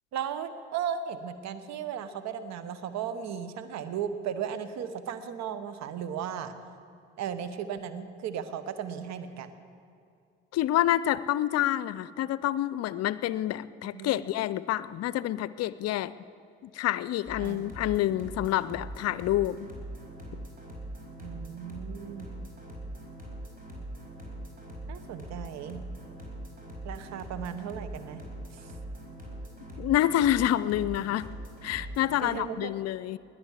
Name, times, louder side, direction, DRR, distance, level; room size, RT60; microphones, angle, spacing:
voice 1, 0.1-6.6 7.2-9.5 13.9-14.3 17.4-17.6 21.2-22.3 24.9-25.8 26.8-28.2 28.5-28.7 32.2-32.7, right 8 dB, 65° right, 11 dB, 1.1 m, -36 dB
voice 2, 10.5-16.1 16.6-19.7 29.8-31.3 31.6-33.2, left 13 dB, 60° left, 17 dB, 0.5 m, -28 dB
sound 1, 17.3-32.2, right 1 dB, 30° right, 5.3 m, -42 dB
20.5 x 8.7 x 7.4 m, 2.4 s
hypercardioid pair, 55°, 29 cm